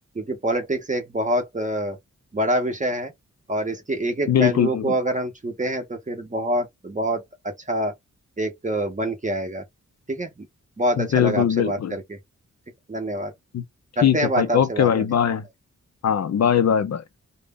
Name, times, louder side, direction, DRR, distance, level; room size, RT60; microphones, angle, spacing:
voice 1, 0.1-2.0 2.3-3.1 3.5-7.9 8.4-9.6 10.1-10.3 10.8-12.2 12.9-13.3 14.0-15.0, right 1 dB, 25° right, 0.6 m, -26 dB
voice 2, 4.3-4.9 11.0-11.9 13.5-13.6 14.0-15.4 16.0-17.0, left 8 dB, 60° left, 0.4 m, -21 dB
2.1 x 2.0 x 3.4 m
wide cardioid pair, 150°, 30 cm